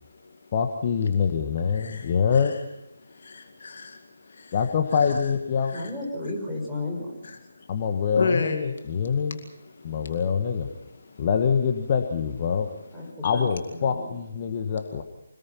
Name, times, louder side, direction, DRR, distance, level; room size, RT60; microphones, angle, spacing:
voice 1, 0.5-2.6 4.5-5.8 7.7-9.4 9.8-10.7 11.2-12.7 13.2-15.0, left 6 dB, 30° left, 5 dB, 1.5 m, -25 dB
voice 2, 1.7-2.1 3.1-4.5 5.7-5.9 7.2-7.7 8.2-8.6 9.8-9.9 11.1-11.2, left 4 dB, 50° left, 5 dB, 2.2 m, -31 dB
voice 3, 5.7-7.1 12.9-13.4 13.7-14.1, left 2 dB, ahead, -6 dB, 5.6 m, -33 dB
26.0 x 19.5 x 5.8 m, 0.83 s
figure-of-eight pair, 150°, 0 cm